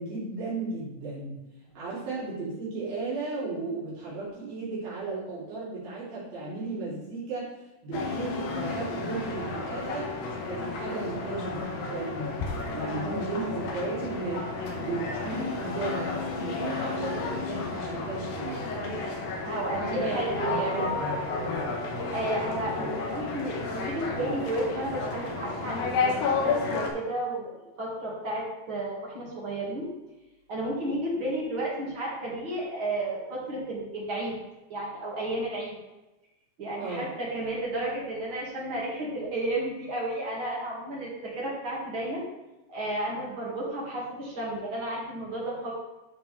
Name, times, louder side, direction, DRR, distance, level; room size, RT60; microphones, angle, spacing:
voice 1, 0.0-1.4 1.7-10.1 10.5-12.4 12.7-18.7 19.8-20.2 20.5-20.9 36.8-37.1, right 3 dB, 80° right, -10 dB, 5.1 m, -35 dB
sound 1, 7.9-26.9, left 3 dB, 80° left, 3.0 m, -32 dB
voice 2, 19.4-20.7 21.3-21.5 22.1-29.9 30.5-34.4 34.7-35.8 36.6-42.2 42.7-45.7, right 1 dB, 40° right, -5 dB, 2.7 m, -32 dB
13.0 x 4.9 x 3.6 m, 1.0 s
omnidirectional pair, 4.1 m